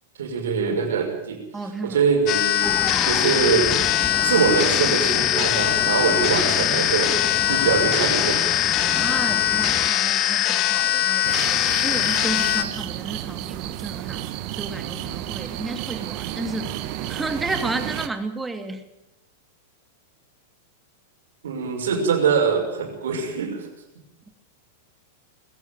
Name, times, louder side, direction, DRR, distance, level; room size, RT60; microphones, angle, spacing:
voice 1, 0.2-1.4 1.8-2.7 3.0-3.8 4.2-7.1 7.5-8.4 21.4-23.7, right 6 dB, 75° right, 4 dB, 5.9 m, -23 dB
voice 2, 1.5-2.0 8.8-14.2 14.5-16.7 17.1-18.8, right 2 dB, 10° right, 7 dB, 2.8 m, -32 dB
sound 1, 2.3-12.6, left 11 dB, 40° left, 2.0 m, -21 dB
sound 2, 2.6-9.9, left 5 dB, 20° left, 1.6 m, -33 dB
sound 3, 11.2-18.1, right 13 dB, 50° right, 1.7 m, -32 dB
21.5 x 15.5 x 9.3 m, 0.91 s
hypercardioid pair, 105°, 0 cm